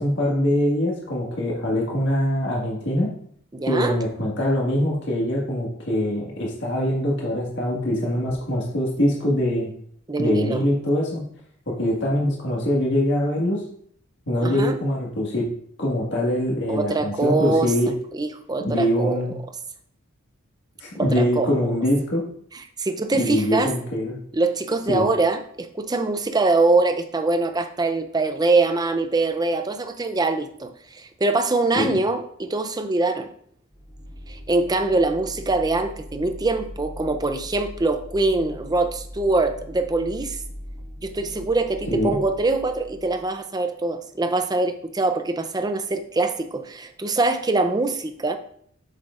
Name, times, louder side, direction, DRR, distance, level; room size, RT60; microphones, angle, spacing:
voice 1, 0.0-3.1 3.6-9.7 10.2-11.2 11.7-13.6 14.3-15.5 15.8-17.9 18.6-19.3 20.8-22.2 23.1-24.1 24.9-25.1 31.7-32.0 41.9-42.2, left 1 dB, 55° left, -3 dB, 1.7 m, -23 dB
voice 2, 3.5-3.9 10.1-10.6 14.4-14.8 16.7-17.7 18.1-19.3 21.0-21.5 22.8-23.7 24.3-33.3 34.3-40.4 41.0-48.4, right 3 dB, 20° right, 8 dB, 0.5 m, -23 dB
sound 1, 33.7-43.3, equal, ahead, 1.4 m, -40 dB
7.8 x 6.5 x 2.5 m, 0.63 s
head